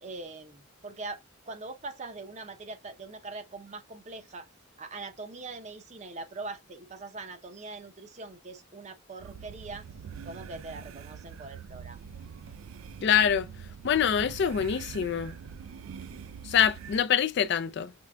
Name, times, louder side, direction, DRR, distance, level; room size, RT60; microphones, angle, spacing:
voice 1, 0.0-1.2 1.5-4.5 4.8-9.8 10.2-12.0, right 3 dB, 35° right, 0.6 m, -42 dB
sound 1, 9.2-17.0, right 7 dB, 75° right, 0.3 m, -44 dB
voice 2, 13.0-13.5 13.8-15.4 16.4-17.9, left 8 dB, 55° left, 0.4 m, -25 dB
6.1 x 3.2 x 2.2 m
head